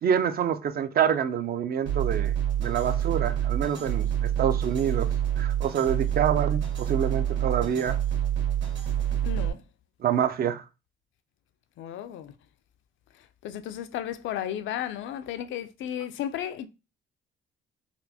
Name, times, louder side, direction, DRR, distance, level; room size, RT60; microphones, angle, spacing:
voice 1, 0.0-5.1 5.4-8.0 10.0-10.6, right 8 dB, 50° right, 0.4 m, -27 dB
sound 1, 1.9-9.5, right 10 dB, 65° right, 1.4 m, -27 dB
voice 2, 9.2-9.6 11.8-12.3 13.1-16.7, left 10 dB, 75° left, 0.4 m, -34 dB
4.1 x 2.0 x 2.8 m
cardioid pair, 90°, 20 cm